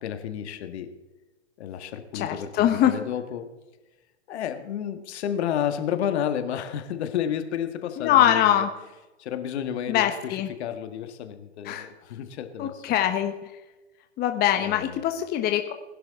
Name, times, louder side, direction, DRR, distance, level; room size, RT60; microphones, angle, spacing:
voice 1, 0.0-0.9 1.6-3.5 4.3-8.6 9.2-13.1 14.6-15.0, left 9 dB, 60° left, 8 dB, 1.8 m, -31 dB
voice 2, 2.1-2.9 8.0-8.7 9.9-10.5 11.6-11.9 12.6-13.3 14.2-15.7, left 11 dB, 25° left, 6 dB, 1.1 m, -23 dB
21.0 x 11.5 x 3.7 m, 1.1 s
hypercardioid pair, 115°, 38 cm